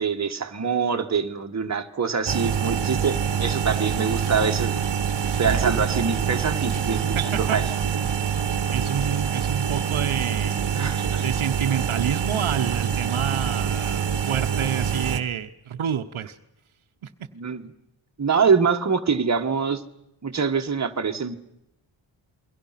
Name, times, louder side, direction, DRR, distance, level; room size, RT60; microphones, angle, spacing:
voice 1, 0.0-4.9 5.4-7.6 10.7-11.2 17.3-17.6 18.2-19.8 20.2-21.4, right 5 dB, 35° right, 4 dB, 1.5 m, -24 dB
sound 1, 2.3-15.2, right 7 dB, 55° right, 1.4 m, -25 dB
voice 2, 7.1-7.6 8.7-10.6 11.2-16.4 17.0-17.1, right 8 dB, 75° right, 7 dB, 1.1 m, -28 dB
28.5 x 22.5 x 5.9 m, 0.85 s
wide cardioid pair, 160°, 49 cm